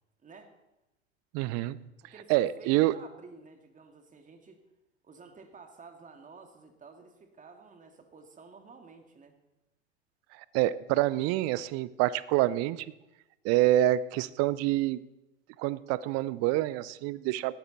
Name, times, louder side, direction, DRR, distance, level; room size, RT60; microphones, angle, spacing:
voice 1, 0.2-0.5 2.1-4.6 5.0-9.3, right 4 dB, 20° right, 5 dB, 2.2 m, -52 dB
voice 2, 1.3-1.8 2.3-2.9 10.4-12.9 13.4-15.0 15.6-17.5, right 15 dB, 45° right, 18 dB, 0.7 m, -27 dB
18.0 x 13.5 x 4.1 m, 0.97 s
figure-of-eight pair, 80°, 34 cm